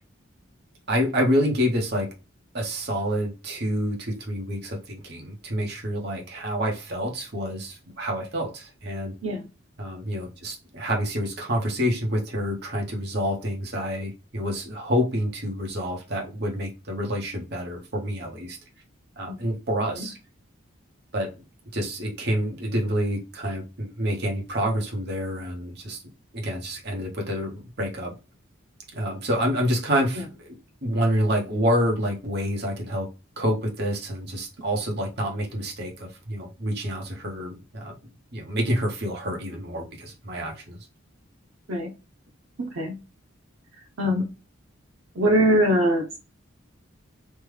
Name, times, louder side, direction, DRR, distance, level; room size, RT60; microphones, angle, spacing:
voice 1, 0.9-2.1 2.5-9.2 9.8-18.6 19.2-20.2 21.1-21.3 21.7-26.0 26.3-28.1 28.9-30.5 30.8-33.1 33.4-37.9 38.3-40.8, equal, 55° right, 1.0 m, -28 dB
voice 2, 42.6-43.0 44.0-44.3 45.2-46.2, equal, 90° right, 0.7 m, -22 dB
3.3 x 2.2 x 3.3 m
head